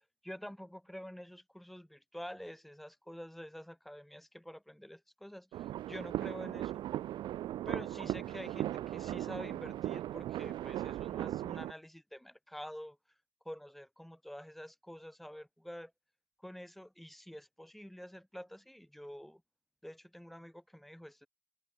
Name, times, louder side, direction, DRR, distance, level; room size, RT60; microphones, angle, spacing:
voice 1, 0.2-6.8 7.6-13.0 13.4-15.9 16.4-19.4 19.8-21.3, equal, ahead, 4.4 m, -48 dB
sound 1, 5.5-11.7, right 13 dB, 90° right, 1.7 m, -38 dB
open air
cardioid pair, 170°, 8 cm